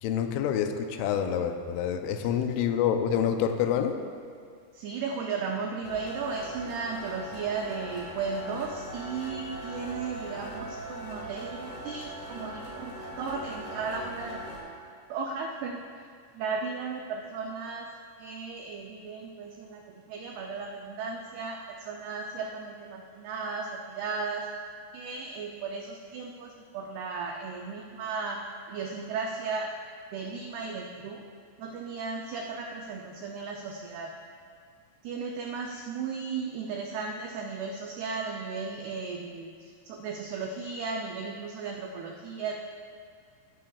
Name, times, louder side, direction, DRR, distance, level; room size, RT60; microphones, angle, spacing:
voice 1, 0.0-4.0, left 8 dB, 90° left, 7 dB, 3.2 m, -27 dB
voice 2, 4.7-14.6 15.1-15.8 16.3-17.9 18.2-24.5 24.9-28.4 28.7-29.7 30.1-31.2 31.6-34.1 35.0-42.5, right 5 dB, 90° right, 1 dB, 2.2 m, -35 dB
sound 1, 5.8-14.6, right 1 dB, 50° left, 3.2 m, -40 dB
17.0 x 12.0 x 2.4 m, 2.1 s
omnidirectional pair, 5.5 m